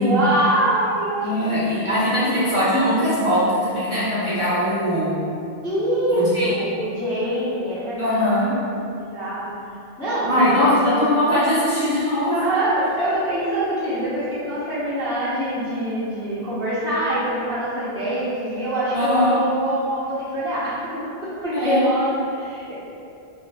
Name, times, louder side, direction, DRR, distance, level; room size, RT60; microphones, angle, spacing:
voice 1, 0.0-2.1 5.6-8.6 9.0-9.5 10.0-10.6 12.1-20.8 21.2-22.7, right 1 dB, 5° left, -13 dB, 0.5 m, -24 dB
voice 2, 1.2-5.2 6.1-6.5 8.0-8.6 10.2-12.5 18.9-19.4 21.5-21.8, equal, 35° right, -13 dB, 0.6 m, -20 dB
2.4 x 2.2 x 2.2 m, 2.6 s
omnidirectional pair, 1.0 m